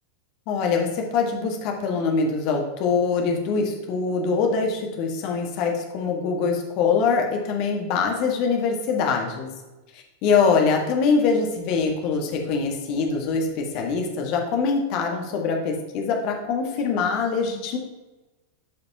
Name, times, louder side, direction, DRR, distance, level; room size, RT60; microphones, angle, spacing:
voice 1, 0.5-9.5 9.9-17.8, left 5 dB, 45° left, 2 dB, 1.6 m, -23 dB
13.0 x 5.1 x 2.9 m, 1.1 s
figure-of-eight pair, 90°, 0 cm